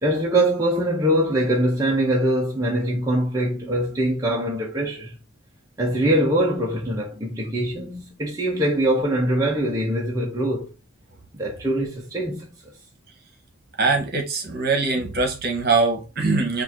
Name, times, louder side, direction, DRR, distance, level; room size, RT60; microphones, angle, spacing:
voice 1, 0.0-5.2 5.8-10.7 11.3-12.5, right 1 dB, 15° right, 0.9 m, -23 dB
voice 2, 13.8-16.6, right 3 dB, 50° right, 1.4 m, -22 dB
5.4 x 2.7 x 2.9 m
head